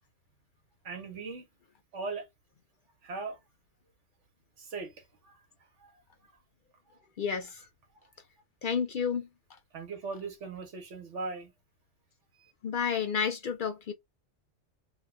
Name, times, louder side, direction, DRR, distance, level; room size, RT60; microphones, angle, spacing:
voice 1, 0.8-1.4 1.9-2.3 3.0-3.4 4.6-4.9 5.2-5.3 5.8-5.9 6.9-7.0 9.7-11.5 12.4-12.5, right 4 dB, 85° right, 1.4 m, -39 dB
voice 2, 7.2-7.7 8.6-9.3 12.6-13.9, left 6 dB, 60° left, 0.6 m, -30 dB
3.0 x 2.3 x 3.1 m
omnidirectional pair, 1.2 m